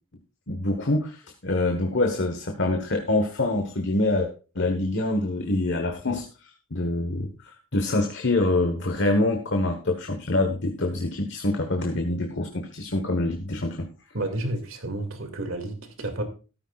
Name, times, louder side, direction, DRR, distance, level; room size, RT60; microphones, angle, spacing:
voice 1, 0.5-4.3 4.5-6.3 6.7-7.3 7.7-13.9, left 2 dB, 55° left, 1.3 m, -25 dB
voice 2, 14.1-16.2, right 1 dB, 65° right, 2.4 m, -31 dB
13.5 x 13.0 x 2.4 m
head